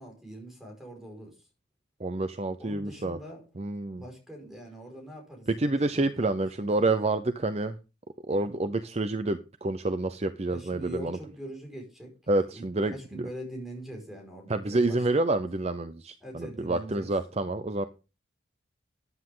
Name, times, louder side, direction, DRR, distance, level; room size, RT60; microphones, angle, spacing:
voice 1, 0.0-1.3 2.6-3.4 4.0-5.5 5.9-6.3 6.6-6.9 8.3-8.7 10.5-12.1 12.5-15.3 16.2-17.1, right 1 dB, ahead, 2 dB, 5.1 m, -43 dB
voice 2, 2.0-3.2 3.6-4.0 5.6-7.8 8.3-11.2 12.3-13.3 14.5-17.9, right 2 dB, 30° right, 11 dB, 0.6 m, -28 dB
13.5 x 9.7 x 3.8 m, 0.31 s
head